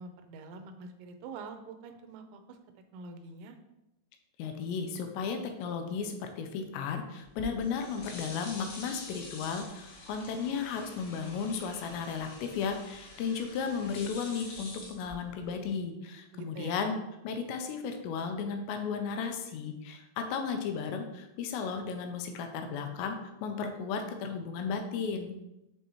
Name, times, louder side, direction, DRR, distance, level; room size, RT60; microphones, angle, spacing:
voice 1, 0.0-2.4 2.9-3.6 16.3-16.8, right 4 dB, 90° right, 7 dB, 3.0 m, -45 dB
voice 2, 4.4-17.0 17.2-25.3, left 6 dB, 80° left, 5 dB, 2.9 m, -34 dB
sound 1, 7.2-15.7, left 2 dB, 60° left, 2.4 m, -47 dB
7.2 x 5.5 x 3.1 m, 0.92 s
omnidirectional pair, 5.1 m